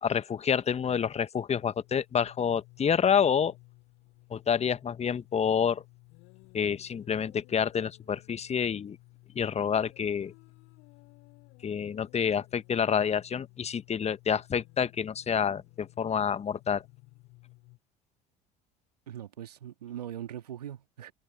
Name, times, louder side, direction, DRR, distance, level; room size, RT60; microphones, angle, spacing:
voice 1, 0.0-3.5 4.3-5.8 6.5-9.0 9.3-10.3 11.6-16.8, left 7 dB, 30° left, 1.5 m, -28 dB
sound 1, 1.6-17.8, left 24 dB, 60° left, 7.2 m, -56 dB
voice 2, 19.1-21.1, right 11 dB, 80° right, 1.9 m, -41 dB
figure-of-eight pair, 60°, 20 cm